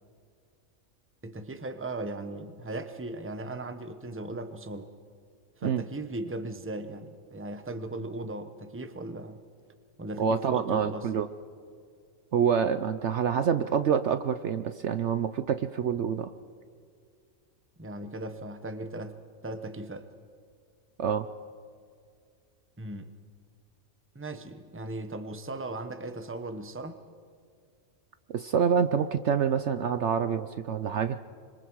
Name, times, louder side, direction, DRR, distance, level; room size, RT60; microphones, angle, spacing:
voice 1, 1.2-4.9 5.6-9.4 10.0-11.1 17.8-20.1 22.8-23.1 24.1-27.0, right 2 dB, 10° right, 9 dB, 0.9 m, -38 dB
voice 2, 10.2-11.3 12.3-16.3 21.0-21.3 28.3-31.2, right 7 dB, 60° right, 11 dB, 0.9 m, -27 dB
26.0 x 25.5 x 4.7 m, 2.2 s
omnidirectional pair, 1.5 m